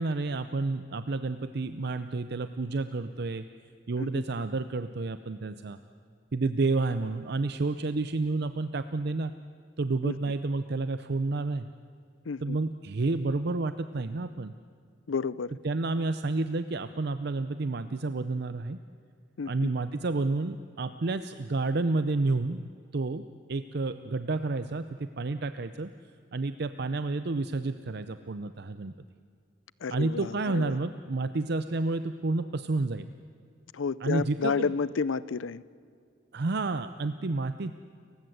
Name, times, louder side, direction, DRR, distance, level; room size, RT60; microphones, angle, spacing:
voice 1, 0.0-3.5 3.9-5.8 6.3-9.3 9.8-11.7 12.4-14.5 15.6-18.8 19.5-23.2 23.5-25.9 26.3-28.9 29.9-33.1 34.0-34.7 36.3-37.7, right 3 dB, 55° right, 11 dB, 0.6 m, -30 dB
voice 2, 12.3-12.6 15.1-15.6 19.4-19.7 29.8-30.8 33.7-35.6, left 5 dB, 85° left, 19 dB, 0.6 m, -31 dB
30.0 x 15.5 x 8.0 m, 2.2 s
head